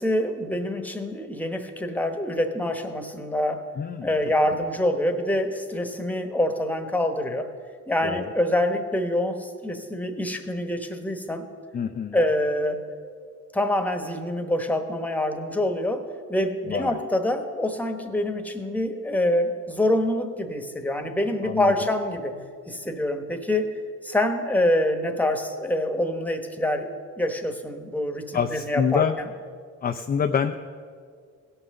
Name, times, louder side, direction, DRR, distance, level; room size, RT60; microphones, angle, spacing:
voice 1, 0.0-3.6 4.0-7.5 7.9-11.4 12.1-12.8 13.5-22.3 22.7-23.7 24.0-29.3, left 1 dB, 5° left, 6 dB, 1.1 m, -26 dB
voice 2, 3.8-4.1 8.0-8.2 11.7-12.2 16.7-17.0 21.4-21.7 28.3-29.1 29.8-30.6, left 7 dB, 30° left, 7 dB, 0.4 m, -26 dB
16.5 x 5.7 x 6.5 m, 2.1 s
cardioid pair, 90°, 30 cm